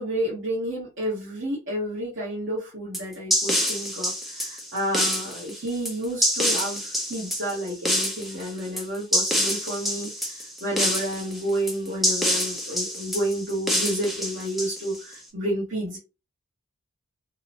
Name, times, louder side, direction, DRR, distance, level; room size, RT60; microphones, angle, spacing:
voice 1, 0.0-16.0, right 1 dB, 55° right, 0.9 m, -30 dB
sound 1, 2.9-15.1, equal, ahead, 0.4 m, -26 dB
2.7 x 2.0 x 2.5 m
head